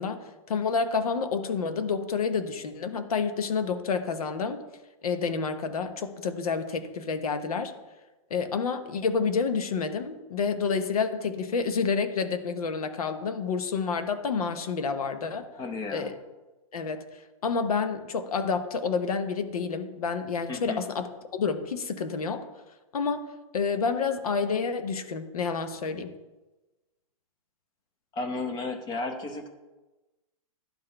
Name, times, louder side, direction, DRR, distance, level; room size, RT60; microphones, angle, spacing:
voice 1, 0.0-4.6 5.0-7.7 8.3-15.5 15.9-16.1 16.7-17.1 17.4-21.0 21.3-22.5 22.9-23.3 23.5-26.1, left 5 dB, 85° left, 9 dB, 0.9 m, -29 dB
voice 2, 15.5-16.1 20.5-20.9 28.1-29.5, left 3 dB, 20° left, 5 dB, 0.7 m, -33 dB
11.5 x 3.9 x 3.3 m, 1.1 s
hypercardioid pair, 135°, 18 cm